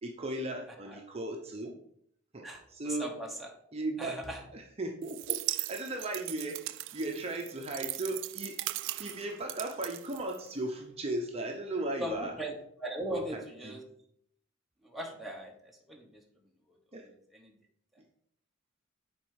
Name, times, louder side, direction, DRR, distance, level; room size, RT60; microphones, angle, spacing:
voice 1, 0.0-1.8 2.3-2.5 2.7-3.1 3.7-4.2 4.5-8.6 9.0-12.3 13.1-13.2 13.7-13.8 16.9-17.1, right 2 dB, 30° right, 2 dB, 0.8 m, -36 dB
voice 2, 0.7-1.0 2.4-3.5 4.0-4.5 12.0-13.8 14.8-16.2 16.7-17.6, right 1 dB, ahead, -1 dB, 1.1 m, -40 dB
sound 1, 5.0-10.7, right 17 dB, 60° right, 0.3 m, -38 dB
7.3 x 4.4 x 4.8 m, 0.67 s
head